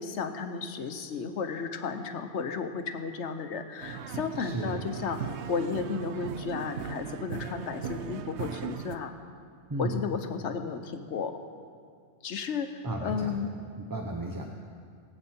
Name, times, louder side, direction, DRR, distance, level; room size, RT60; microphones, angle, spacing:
voice 1, 0.0-5.2 5.5-9.1 9.8-11.3 12.2-13.5, left 5 dB, 80° left, 7 dB, 1.1 m, -33 dB
sound 1, 3.8-9.0, right 8 dB, 80° right, 0.9 m, -38 dB
voice 2, 4.4-4.8 9.7-10.0 12.8-13.4 13.8-14.5, right 1 dB, 20° right, 0 dB, 0.7 m, -34 dB
21.5 x 8.1 x 4.3 m, 2.2 s
omnidirectional pair, 1.2 m